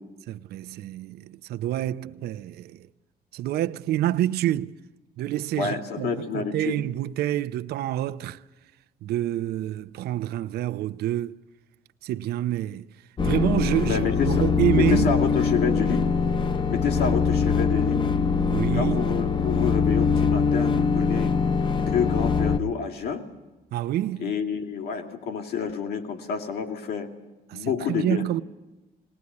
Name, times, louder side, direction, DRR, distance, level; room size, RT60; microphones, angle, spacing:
voice 1, 0.3-2.9 3.3-4.7 5.2-8.4 9.0-11.4 12.0-12.8 13.2-15.1 18.5-19.1 23.7-24.3 27.5-28.4, right 13 dB, 70° right, 0.8 m, -27 dB
voice 2, 5.5-6.8 13.9-16.1 16.7-18.0 18.7-21.3 21.9-23.2 24.2-27.1 27.5-28.2, left 6 dB, 70° left, 3.2 m, -28 dB
sound 1, 13.2-22.6, left 5 dB, 30° left, 0.9 m, -23 dB
20.5 x 19.0 x 9.7 m
cardioid pair, 110°, 17 cm